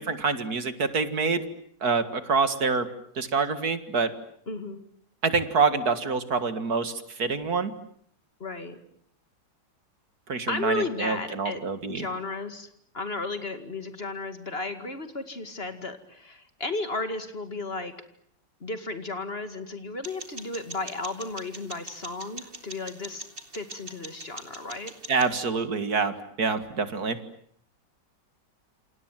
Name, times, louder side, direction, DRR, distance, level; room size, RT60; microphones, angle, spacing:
voice 1, 0.0-1.5 1.8-2.9 3.2-4.1 5.2-7.7 10.3-12.1 25.1-27.2, right 4 dB, 55° right, 11 dB, 2.4 m, -26 dB
voice 2, 4.5-4.8 8.4-8.8 10.5-11.6 11.9-12.7 12.9-17.9 18.6-23.3 23.5-24.9, left 3 dB, 35° left, 9 dB, 2.4 m, -34 dB
sound 1, 20.0-25.4, right 2 dB, 30° right, 2.8 m, -43 dB
28.5 x 27.5 x 7.5 m, 0.65 s
omnidirectional pair, 1.9 m